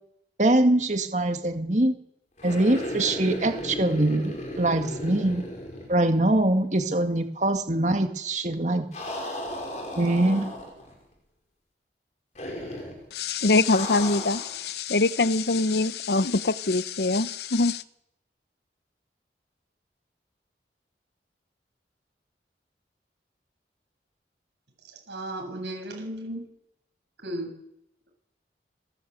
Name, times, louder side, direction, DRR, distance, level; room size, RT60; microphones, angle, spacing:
voice 1, 0.4-2.0 2.4-5.4 5.9-8.9 10.0-10.5, right 1 dB, 40° right, 1.9 m, -23 dB
sound 1, 2.4-6.5 6.8-6.9 8.9-10.9 12.4-13.0 13.7-14.6, left 1 dB, 40° left, 5.4 m, -35 dB
voice 2, 13.1-17.8, left 3 dB, 70° left, 0.8 m, -24 dB
voice 3, 25.1-26.4 27.2-27.5, right 1 dB, 85° right, 7.2 m, -34 dB
26.5 x 12.0 x 8.2 m
head